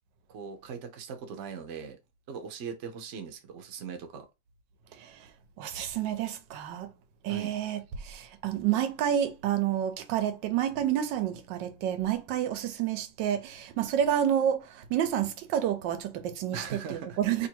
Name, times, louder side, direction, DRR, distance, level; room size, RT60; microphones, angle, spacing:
voice 1, 0.3-2.0 2.3-4.3 7.3-7.5 16.5-17.5, right 6 dB, 55° right, 0.9 m, -40 dB
voice 2, 5.6-6.9 7.2-17.5, right 10 dB, 85° right, 1.3 m, -29 dB
3.0 x 2.6 x 4.4 m
omnidirectional pair, 1.9 m